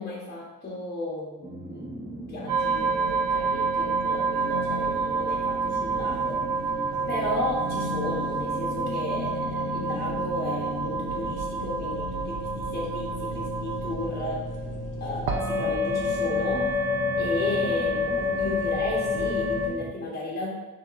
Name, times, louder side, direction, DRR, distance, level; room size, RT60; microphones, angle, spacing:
voice 1, 0.0-6.4 7.1-14.4 15.0-16.7 17.1-20.5, left 2 dB, 35° left, -4 dB, 1.1 m, -34 dB
sound 1, 1.4-19.9, equal, 10° right, 1.0 m, -38 dB
sound 2, 2.5-19.7, right 1 dB, 80° right, 0.8 m, -28 dB
6.2 x 2.9 x 2.5 m, 1.1 s
cardioid pair, 90°, 30 cm